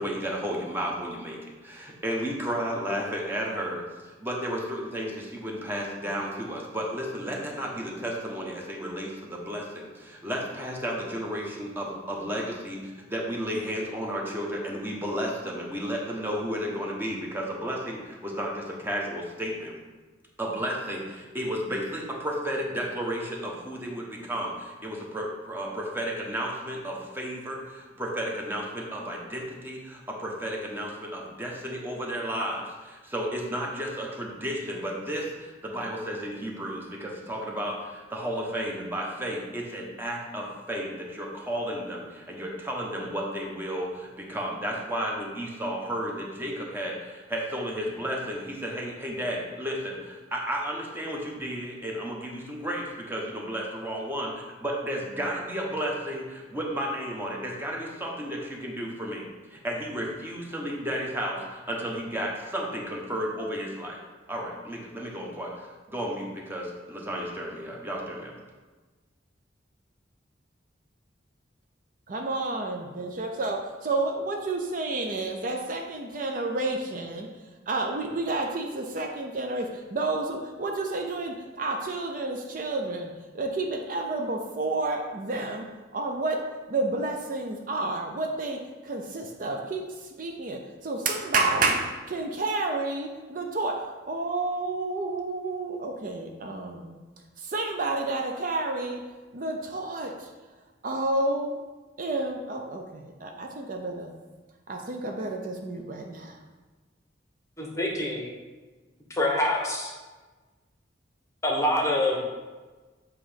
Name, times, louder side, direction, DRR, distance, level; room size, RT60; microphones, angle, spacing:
voice 1, 0.0-19.7 20.4-64.0 64.3-68.3, equal, 10° right, -1 dB, 0.9 m, -33 dB
voice 2, 72.1-85.7 85.9-86.4 86.7-97.0 97.4-99.0 99.3-100.3 100.8-101.5 102.0-104.1 104.7-106.4, right 2 dB, 45° right, 2 dB, 0.6 m, -30 dB
voice 3, 107.6-108.3 109.1-109.9 111.4-112.3, left 1 dB, 15° left, -1 dB, 0.9 m, -26 dB
7.6 x 3.0 x 5.0 m, 1.3 s
head